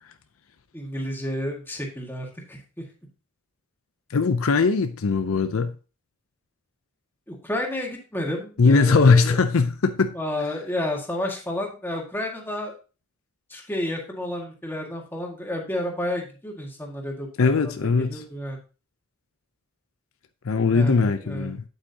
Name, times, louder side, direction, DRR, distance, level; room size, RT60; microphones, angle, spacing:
voice 1, 0.7-2.8 7.3-9.4 10.1-12.7 13.5-18.6 20.7-21.6, left 1 dB, 10° left, 1.8 m, -31 dB
voice 2, 4.1-5.7 8.6-10.1 17.4-18.2 20.4-21.6, left 4 dB, 70° left, 0.6 m, -20 dB
8.8 x 8.0 x 2.8 m
head